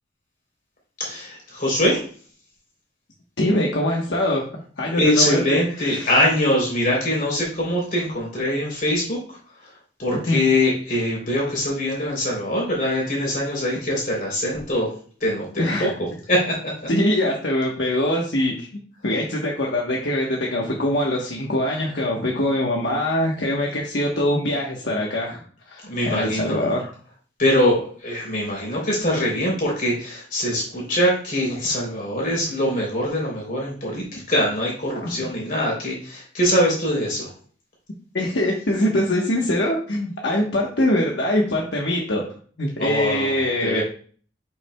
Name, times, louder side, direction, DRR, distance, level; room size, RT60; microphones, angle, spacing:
voice 1, 1.0-2.0 4.9-9.4 10.0-14.9 15.2-15.9 16.3-16.7 25.8-26.6 27.4-37.3 42.8-43.8, left 1 dB, 50° left, -2 dB, 3.4 m, -23 dB
voice 2, 3.4-6.2 10.3-10.4 15.6-15.9 16.9-18.7 19.0-26.9 35.0-35.3 38.1-42.2 42.6-43.8, left 1 dB, 75° left, -1 dB, 1.1 m, -23 dB
7.8 x 6.0 x 2.3 m, 0.44 s
head